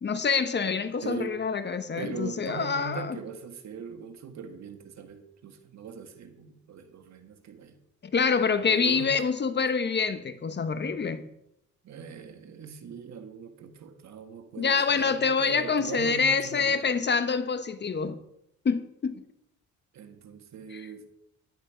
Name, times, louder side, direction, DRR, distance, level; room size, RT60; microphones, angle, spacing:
voice 1, 0.0-3.2 8.1-11.3 14.6-18.2 18.6-19.2 20.7-20.9, left 5 dB, 35° left, 1.0 m, -26 dB
voice 2, 1.0-1.4 2.0-7.8 8.1-9.1 11.8-16.8 19.9-21.1, right 6 dB, 65° right, 1.8 m, -41 dB
11.0 x 10.0 x 5.0 m
cardioid pair, 90°, 30 cm